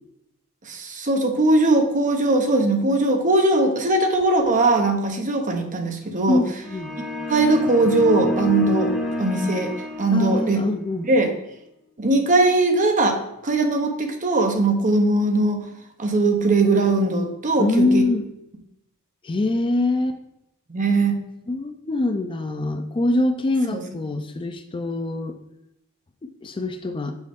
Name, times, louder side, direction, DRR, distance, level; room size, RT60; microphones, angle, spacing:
voice 1, 0.6-6.4 7.3-8.9 9.2-9.7 10.0-10.6 11.0-11.3 12.0-15.6 16.0-18.0 20.7-21.2 23.7-23.8, right 2 dB, 35° right, 4 dB, 0.9 m, -20 dB
voice 2, 6.3-6.9 10.1-11.1 17.6-18.3 19.2-20.2 21.5-25.4 26.2-27.1, left 2 dB, 25° left, 8 dB, 0.4 m, -24 dB
sound 1, 6.6-10.6, equal, ahead, 0.9 m, -27 dB
6.3 x 5.2 x 3.6 m, 0.86 s
head